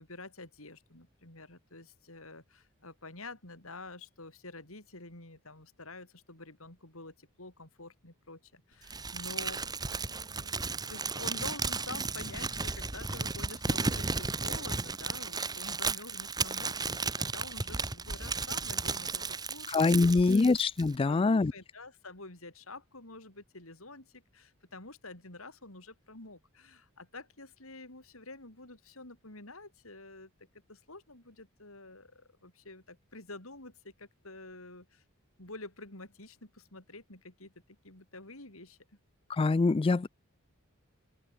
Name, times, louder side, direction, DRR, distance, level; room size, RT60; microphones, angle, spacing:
voice 1, 0.0-10.6 10.9-20.5 21.1-30.3 30.7-35.0 35.4-37.5 37.8-38.8, left 2 dB, 70° left, 6.0 m, -48 dB
Crumpling crinkling, 8.9-20.9, right 4 dB, 20° right, 1.6 m, -34 dB
voice 2, 19.7-21.5 39.3-40.1, left 3 dB, 25° left, 0.3 m, -24 dB
open air
head